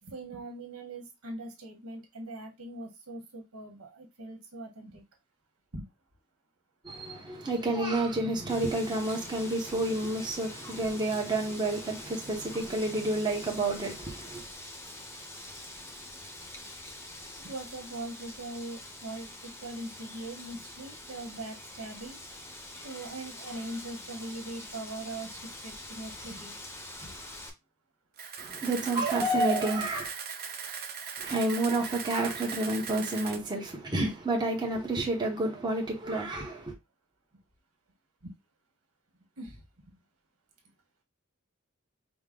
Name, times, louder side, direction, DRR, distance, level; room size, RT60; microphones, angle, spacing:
voice 1, 0.0-5.0 5.7-5.9 17.4-22.2 22.8-26.6 27.0-27.1 38.2-38.3 39.4-39.6, right 2 dB, 75° right, 1.4 m, -41 dB
voice 2, 6.8-14.4 28.4-30.1 31.2-36.7, right 2 dB, 20° right, 0.9 m, -30 dB
Wind, 8.5-27.5, left 1 dB, 10° left, 0.8 m, -45 dB
Camera, 28.2-33.4, right 6 dB, 45° right, 0.7 m, -39 dB
5.1 x 2.1 x 3.7 m
head